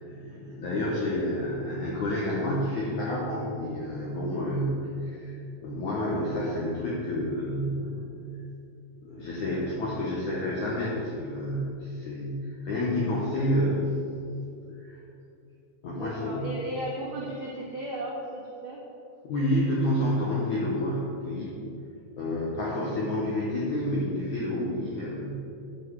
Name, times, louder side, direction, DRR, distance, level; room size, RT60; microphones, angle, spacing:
voice 1, 0.0-8.4 9.0-13.9 14.8-15.0 15.8-16.5 19.2-21.6 22.2-25.3, left 1 dB, 75° left, -5 dB, 1.8 m, -29 dB
voice 2, 15.9-18.8, right 1 dB, 65° right, -7 dB, 1.3 m, -35 dB
10.5 x 8.9 x 4.8 m, 2.7 s
omnidirectional pair, 5.4 m